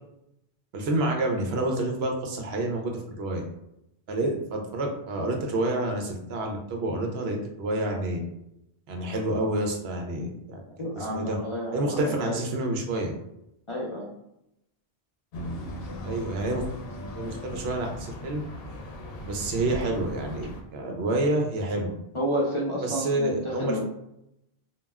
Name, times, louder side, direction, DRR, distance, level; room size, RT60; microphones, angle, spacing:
voice 1, 0.7-3.4 4.1-8.2 8.9-10.6 10.9-11.4 11.7-13.1 16.0-16.6 17.2-18.4 19.2-21.9 22.8-23.8, right 2 dB, 80° right, 2 dB, 0.9 m, -28 dB
voice 2, 10.8-12.4 13.7-14.1 22.1-23.8, equal, 40° left, -5 dB, 0.5 m, -30 dB
sound 1, 15.3-20.6, left 1 dB, 70° left, 0.8 m, -38 dB
2.3 x 2.1 x 3.4 m, 0.82 s
omnidirectional pair, 1.0 m